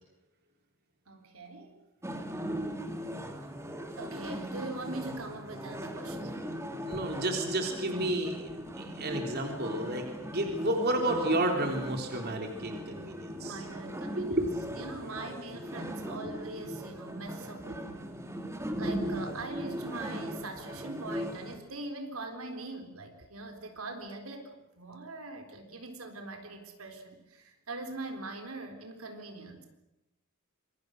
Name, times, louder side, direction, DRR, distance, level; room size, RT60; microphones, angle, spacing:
voice 1, 1.1-1.8 3.4-3.5 4.0-6.5 13.4-14.5 14.8-18.1 18.7-29.7, right 2 dB, 75° right, 4 dB, 3.9 m, -42 dB
sound 1, 2.0-21.6, equal, 15° right, 2.7 m, -39 dB
voice 2, 6.8-8.4 8.7-13.6 14.1-14.9 17.8-17.9, right 1 dB, 50° right, 3 dB, 3.4 m, -31 dB
26.5 x 23.5 x 6.6 m, 0.93 s
head